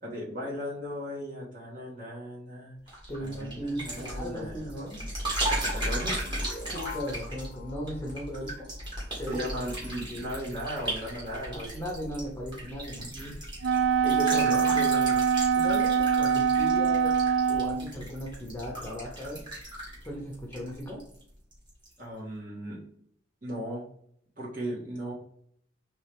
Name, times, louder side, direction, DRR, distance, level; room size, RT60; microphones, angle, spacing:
voice 1, 0.0-2.8 3.2-4.9 5.7-6.2 9.3-11.7 13.1-13.3 14.0-15.2 22.0-22.8 23.4-23.8 24.4-25.1, equal, 45° right, -4 dB, 1.9 m, -36 dB
sound 1, 2.9-21.2 21.5-21.9, right 1 dB, 25° right, 1.8 m, -36 dB
voice 2, 3.1-5.0 6.7-8.7 9.2-9.4 10.1-10.2 11.5-13.0 14.3-14.4 15.5-17.2 17.5-19.4 20.0-21.0, equal, 10° left, -2 dB, 0.9 m, -37 dB
sound 2, 6.3-9.5, left 4 dB, 45° left, 0.5 m, -46 dB
Wind instrument woodwind instrument, 13.6-17.9, right 6 dB, 65° right, 0.3 m, -24 dB
4.4 x 3.4 x 3.5 m, 0.66 s
head